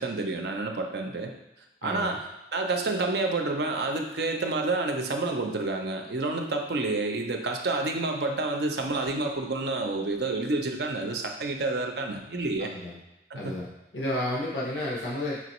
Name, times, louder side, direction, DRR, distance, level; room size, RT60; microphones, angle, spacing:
voice 1, 0.0-1.3 1.8-2.2 2.5-12.7 13.3-13.6, right 2 dB, 65° right, 3 dB, 0.6 m, -29 dB
voice 2, 1.8-2.1 12.6-12.9 13.3-15.4, left 1 dB, 80° left, -4 dB, 0.8 m, -32 dB
5.7 x 3.0 x 3.0 m, 0.97 s
head